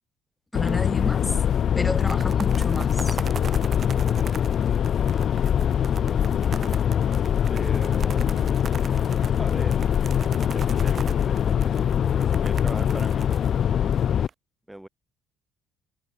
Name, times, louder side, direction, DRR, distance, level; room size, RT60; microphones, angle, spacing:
sound 1, 0.5-14.3, left 9 dB, 50° left, 0.5 m, -23 dB
voice 1, 0.5-1.4 1.8-3.2, left 2 dB, 10° left, 0.6 m, -30 dB
sound 2, 0.7-1.1 1.4-1.5 1.8-14.3, right 6 dB, 40° right, 2.7 m, -41 dB
voice 2, 5.7-6.8 7.5-8.8 9.4-9.8 10.5-13.3 14.7-14.9, right 1 dB, 5° right, 2.1 m, -40 dB
cardioid pair, 110°, 0 cm